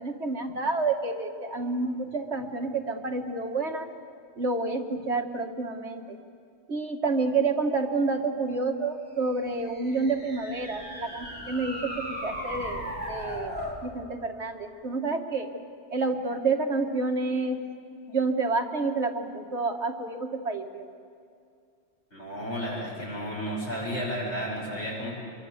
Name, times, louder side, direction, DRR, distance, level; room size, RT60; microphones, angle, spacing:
voice 1, 0.0-3.9 4.4-6.2 6.7-12.8 13.1-13.5 13.8-15.5 15.9-17.6 18.1-20.9, right 3 dB, 75° right, 3 dB, 2.1 m, -29 dB
sound 1, 9.5-13.8, equal, 10° left, 3.8 m, -37 dB
voice 2, 22.1-25.1, equal, 85° left, -4 dB, 8.4 m, -32 dB
25.5 x 22.5 x 8.2 m, 2.3 s
omnidirectional pair, 1.2 m